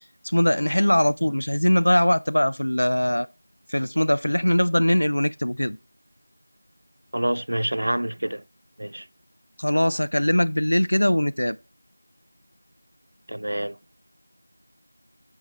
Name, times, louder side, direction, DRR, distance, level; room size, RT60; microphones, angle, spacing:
voice 1, 0.2-3.3 3.7-5.8 9.6-11.6, equal, 90° left, 0.5 m, -21 dB
voice 2, 7.1-8.4 8.8-9.1 13.3-13.8, right 1 dB, 70° right, 0.3 m, -27 dB
8.1 x 4.7 x 4.4 m
figure-of-eight pair, 175°, 0 cm